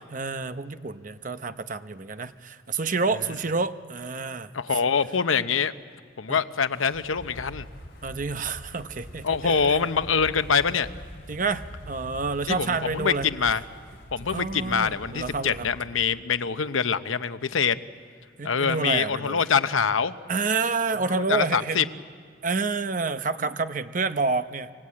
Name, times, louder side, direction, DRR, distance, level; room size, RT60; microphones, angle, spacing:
voice 1, 0.1-4.5 6.3-6.4 8.0-9.8 11.3-13.3 14.3-15.7 18.4-19.4 20.3-21.9 22.4-24.7, right 4 dB, 40° right, 11 dB, 0.7 m, -28 dB
voice 2, 4.5-5.7 6.2-7.7 9.2-10.9 12.5-13.6 14.1-17.8 18.4-20.1 21.1-21.8, left 6 dB, 85° left, 12 dB, 0.8 m, -24 dB
Wind, 6.7-15.9, equal, 60° left, 3.6 m, -44 dB
26.5 x 22.5 x 8.6 m, 2.1 s
head